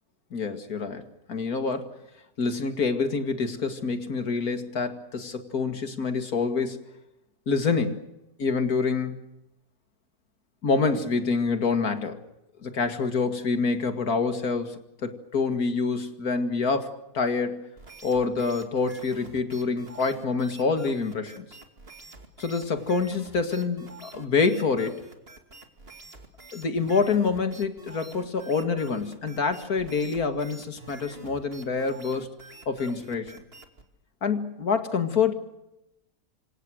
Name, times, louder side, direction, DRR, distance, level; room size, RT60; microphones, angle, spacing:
voice 1, 0.3-1.0 1.3-1.9 2.4-6.8 7.5-8.0 8.4-9.2 10.6-12.2 12.6-17.7 18.0-21.4 22.4-25.0 26.5-32.3 32.7-33.4 34.2-35.3, left 4 dB, 70° left, 8 dB, 2.6 m, -26 dB
sound 1, 17.8-33.9, right 2 dB, 40° right, 2.7 m, -48 dB
27.5 x 26.0 x 6.4 m, 0.89 s
omnidirectional pair, 1.6 m